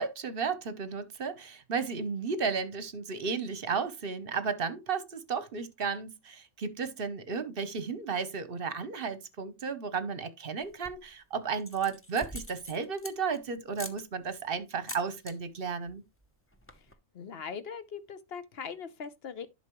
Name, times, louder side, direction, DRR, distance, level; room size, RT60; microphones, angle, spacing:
voice 1, 0.0-16.0, right 5 dB, 45° right, 1.1 m, -33 dB
sound 1, 10.6-11.1 11.6-13.4 13.7-14.0 14.7-15.3 15.6-15.9 16.2-16.3 16.5-16.9, left 1 dB, 10° left, 0.8 m, -44 dB
voice 2, 17.1-19.5, left 6 dB, 50° left, 1.0 m, -40 dB
11.0 x 5.9 x 3.1 m
omnidirectional pair, 1.4 m